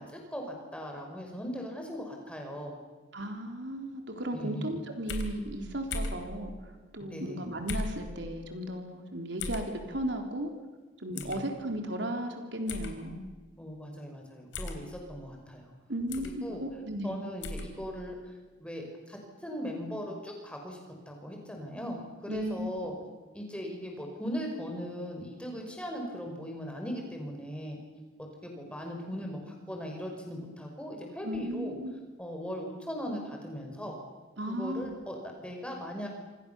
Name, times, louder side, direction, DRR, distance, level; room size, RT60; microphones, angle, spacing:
voice 1, 0.0-2.8 4.3-4.7 7.1-7.4 11.1-11.4 13.6-15.7 16.2-16.6 17.0-18.3 18.6-20.8 21.1-22.9 23.3-27.8 28.4-31.8 32.2-33.9 34.5-36.1, equal, 5° left, 1 dB, 5.5 m, -39 dB
voice 2, 3.1-10.5 11.0-13.3 15.9-17.2 22.3-22.9 31.2-31.9 34.4-35.0, right 1 dB, 70° right, 4 dB, 3.7 m, -35 dB
sound 1, 5.1-5.3 5.9-6.2 7.7-8.0 9.4-9.7 11.2-11.4 12.7-12.9 14.5-14.8 16.1-16.3 17.4-17.7, left 2 dB, 75° left, 3.7 m, -35 dB
28.0 x 26.0 x 7.1 m, 1.3 s
head